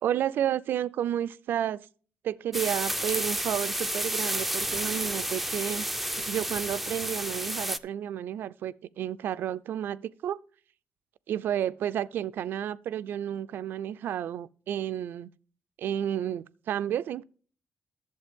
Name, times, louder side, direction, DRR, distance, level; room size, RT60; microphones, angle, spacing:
voice 1, 0.0-1.9 2.2-5.9 6.3-10.4 11.3-15.3 15.8-17.2, right 10 dB, 75° right, 0.4 m, -31 dB
sound 1, 2.5-7.8, right 1 dB, 5° right, 0.4 m, -31 dB
11.5 x 7.4 x 3.5 m
cardioid pair, 140°, 4 cm